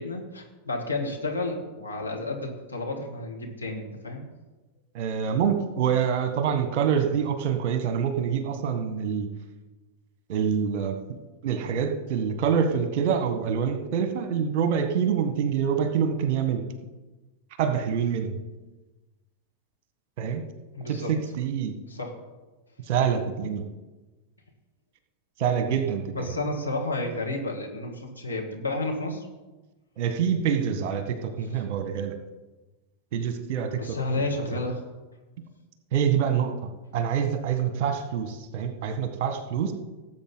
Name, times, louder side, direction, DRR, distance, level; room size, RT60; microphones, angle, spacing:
voice 1, 0.0-4.2 20.7-21.2 21.9-22.2 26.1-29.3 31.5-31.6 33.7-34.8, left 2 dB, 80° left, 0 dB, 2.2 m, -31 dB
voice 2, 4.9-9.3 10.3-11.0 11.4-16.6 17.6-18.4 20.2-20.4 20.9-21.8 22.9-23.7 25.4-26.3 30.0-32.2 33.1-34.0 34.5-34.6 35.9-39.7, right 7 dB, 45° right, 7 dB, 1.5 m, -26 dB
18.0 x 7.9 x 4.0 m, 1.2 s
figure-of-eight pair, 90°, 0 cm